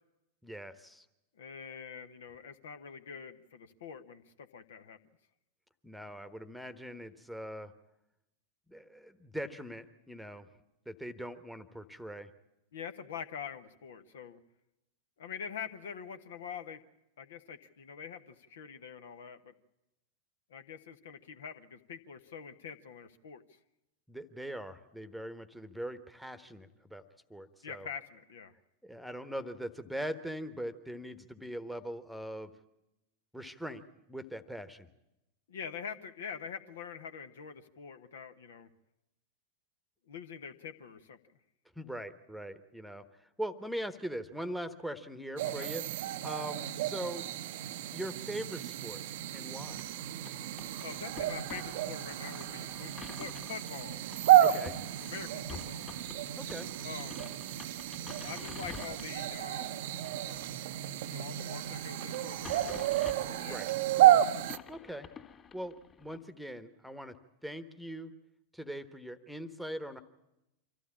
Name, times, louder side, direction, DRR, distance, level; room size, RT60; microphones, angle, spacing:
voice 1, 0.4-1.0 5.8-7.7 8.7-10.5 10.9-12.3 24.1-27.0 27.3-27.9 28.8-32.5 33.3-33.8 34.1-34.9 41.7-45.8 46.2-47.3 47.9-49.0 49.3-49.8 54.4-54.8 56.4-56.7 63.4-63.7 64.7-65.1 65.5-68.1 68.5-70.0, equal, ahead, 12 dB, 1.2 m, -41 dB
voice 2, 1.4-5.0 12.7-14.4 15.2-16.8 17.2-19.5 20.5-23.4 27.6-28.5 35.5-38.7 40.1-41.4 45.6-45.7 50.8-52.9 53.2-54.0 54.5-54.7 55.0-55.9 56.8-57.2 58.2-59.8 61.0-63.0 63.3-63.6 63.8-63.9, left 7 dB, 60° left, 9 dB, 1.2 m, -45 dB
sound 1, 45.4-64.6, right 12 dB, 55° right, 0.7 m, -31 dB
sound 2, 49.4-66.2, left 6 dB, 25° left, 2.4 m, -51 dB
25.5 x 15.0 x 8.5 m, 0.91 s
figure-of-eight pair, 90°, 0 cm